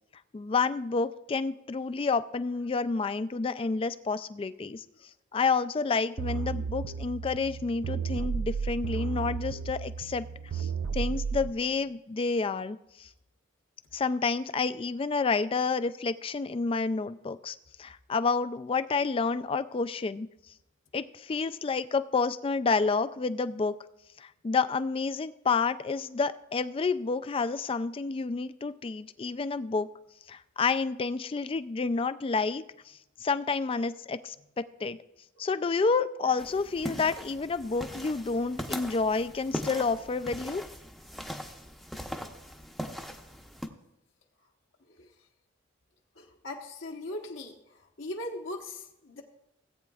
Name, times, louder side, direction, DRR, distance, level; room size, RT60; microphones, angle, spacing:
voice 1, 0.3-4.8 5.3-10.3 10.5-13.1 13.9-20.3 20.9-23.7 24.2-29.9 30.3-35.0 35.4-40.6, left 4 dB, 25° left, 13 dB, 0.3 m, -29 dB
sound 1, 6.2-11.5, right 5 dB, 85° right, 0.4 m, -33 dB
sound 2, 36.4-43.7, equal, ahead, 0.7 m, -40 dB
voice 2, 46.2-47.5 48.0-49.2, left 1 dB, 70° left, 1 dB, 1.1 m, -39 dB
17.5 x 8.7 x 2.4 m, 0.88 s
head